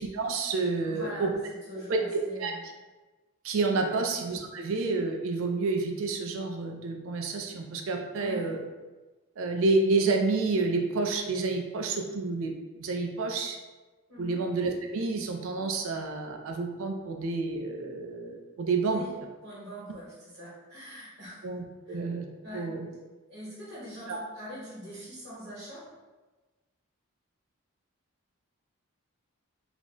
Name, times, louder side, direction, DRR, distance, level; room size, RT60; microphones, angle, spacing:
voice 1, 0.0-1.3 1.9-2.5 3.4-8.6 9.4-13.6 14.2-19.0 21.4-22.2 22.5-22.9 24.1-24.2, right 3 dB, 65° right, 3 dB, 0.4 m, -29 dB
voice 2, 0.8-2.6 3.8-4.1 8.2-8.5 14.1-14.3 18.8-19.1 19.4-21.4 21.9-22.0 22.4-22.7 23.3-25.9, equal, 45° right, -8 dB, 1.1 m, -43 dB
2.4 x 2.1 x 3.6 m, 1.2 s
head